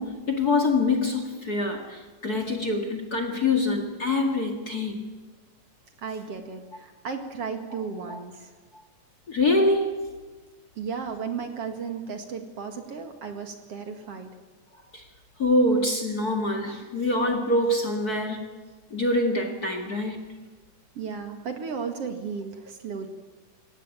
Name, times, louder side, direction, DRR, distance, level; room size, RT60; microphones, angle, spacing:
voice 1, 0.0-5.0 7.7-7.8 8.1-8.2 8.7-8.8 9.3-10.0 14.9-15.0 15.4-18.5 18.9-20.2, left 2 dB, 35° left, 6 dB, 2.2 m, -25 dB
voice 2, 6.0-8.5 10.8-14.3 21.0-23.1, right 5 dB, 50° right, 6 dB, 2.6 m, -34 dB
23.0 x 17.5 x 9.1 m, 1.3 s
omnidirectional pair, 3.6 m